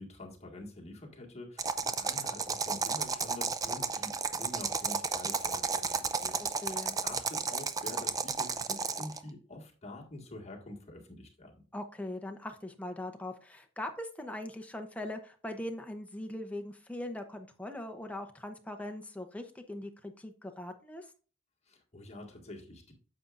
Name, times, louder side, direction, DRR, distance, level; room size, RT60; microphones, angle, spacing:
voice 1, 0.0-11.5 21.7-22.9, left 1 dB, 30° left, 0 dB, 1.8 m, -47 dB
sound 1, 1.6-9.2, right 5 dB, 15° right, 0.4 m, -33 dB
voice 2, 6.4-7.0 11.7-21.1, left 1 dB, 5° left, 4 dB, 0.8 m, -41 dB
9.3 x 7.0 x 2.5 m, 0.38 s
head